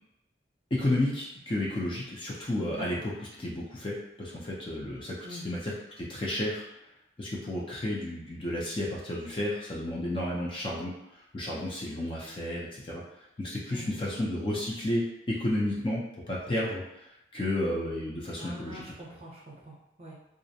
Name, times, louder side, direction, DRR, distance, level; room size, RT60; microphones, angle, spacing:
voice 1, 0.7-3.0 3.4-6.6 7.2-10.9 11.3-13.0 13.4-16.8 17.3-18.8, left 1 dB, 30° left, -4 dB, 0.4 m, -32 dB
voice 2, 5.2-5.6 13.7-14.0 18.4-20.2, equal, 35° right, -5 dB, 0.6 m, -44 dB
2.4 x 2.0 x 2.6 m, 0.87 s
head